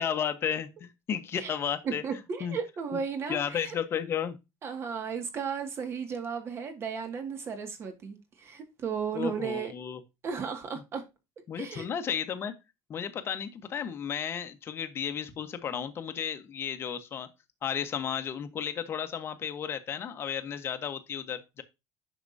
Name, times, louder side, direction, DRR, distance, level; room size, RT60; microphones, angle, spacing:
voice 1, 0.0-2.6 3.3-4.4 9.1-10.0 11.5-12.5 12.9-17.3 17.6-21.6, left 8 dB, 35° left, 1.2 m, -33 dB
voice 2, 1.8-3.8 4.6-9.7 10.2-11.0 11.5-11.9, right 6 dB, 35° right, 2.0 m, -35 dB
9.7 x 6.1 x 2.7 m
cardioid pair, 145°, 7 cm